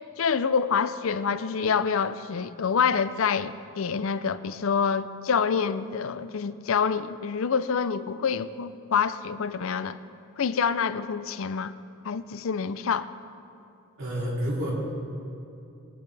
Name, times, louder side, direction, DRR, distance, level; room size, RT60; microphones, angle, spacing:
voice 1, 0.2-10.0 10.4-11.7 12.0-13.1, left 6 dB, 70° left, 0.5 m, -27 dB
voice 2, 14.0-14.7, equal, 65° right, 3.0 m, -29 dB
21.5 x 10.5 x 3.4 m
head